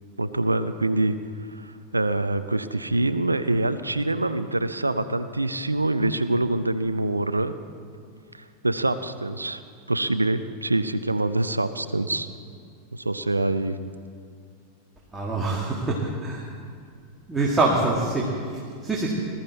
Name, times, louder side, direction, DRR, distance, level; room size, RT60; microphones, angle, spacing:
voice 1, 0.2-1.1 1.5-7.5 8.3-9.6 9.9-12.3 12.9-13.8, right 2 dB, 80° right, 12 dB, 0.5 m, -25 dB
voice 2, 15.1-16.5 17.3-19.1, right 2 dB, 10° right, -3 dB, 2.0 m, -25 dB
20.0 x 13.5 x 4.1 m, 2.3 s
figure-of-eight pair, 90°, 0 cm